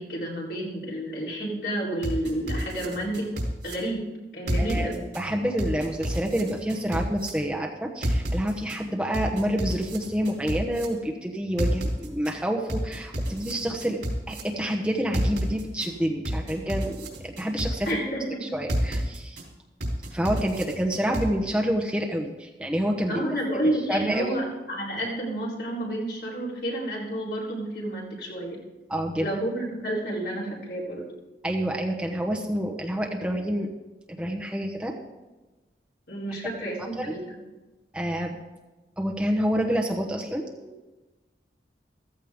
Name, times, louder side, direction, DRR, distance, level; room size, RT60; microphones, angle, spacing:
voice 1, 0.0-4.0 4.3-5.0 17.9-18.6 23.1-28.6 29.2-31.1 36.1-37.4, right 1 dB, 60° left, -4 dB, 4.1 m, -30 dB
sound 1, 2.0-3.7 4.5-5.2 5.6-7.3 8.0-8.8 9.1-10.9 11.6-12.3 12.7-14.4 15.1-15.9 16.3-17.9 18.7-19.4 19.8-21.3, equal, 85° right, 3.7 m, -30 dB
voice 2, 4.6-4.9 5.1-14.0 14.3-17.9 18.4-19.4 20.1-23.2 23.5-24.3 28.9-29.3 31.4-33.7 34.2-35.0 37.0-37.1 37.9-38.3 39.0-40.7, equal, 5° right, 0 dB, 1.0 m, -28 dB
15.0 x 14.5 x 3.7 m, 1.1 s
head